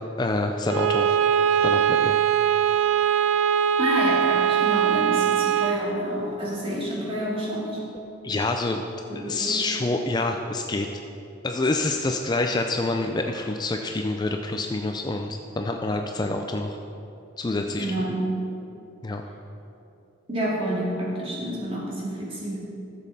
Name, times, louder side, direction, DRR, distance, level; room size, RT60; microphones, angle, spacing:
voice 1, 0.2-1.1 1.6-2.2 8.2-8.8 9.1-10.9 11.4-16.8 17.4-17.9 19.0-19.2, left 2 dB, 20° left, 4 dB, 0.4 m, -27 dB
Bowed string instrument, 0.7-5.9, right 8 dB, 90° right, 0.4 m, -21 dB
voice 2, 3.8-7.9 9.1-9.7 17.8-18.3 20.3-22.6, right 1 dB, 30° right, -5 dB, 2.2 m, -29 dB
13.5 x 7.3 x 4.2 m, 2.8 s
head